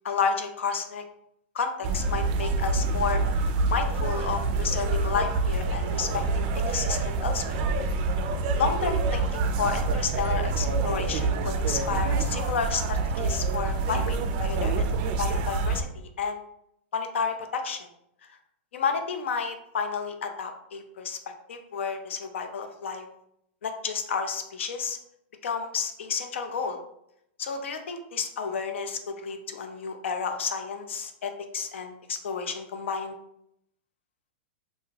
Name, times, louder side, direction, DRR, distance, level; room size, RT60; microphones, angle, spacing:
voice 1, 0.0-1.0 1.5-3.2 3.7-7.6 8.6-14.8 15.2-16.4 16.9-17.9 18.7-23.1 23.6-25.0 25.4-26.8 27.4-33.1, left 5 dB, 85° left, 6 dB, 0.4 m, -31 dB
sound 1, 1.8-15.8, right 3 dB, 45° right, 0.3 m, -27 dB
2.6 x 2.3 x 3.2 m, 0.77 s
hypercardioid pair, 135°, 6 cm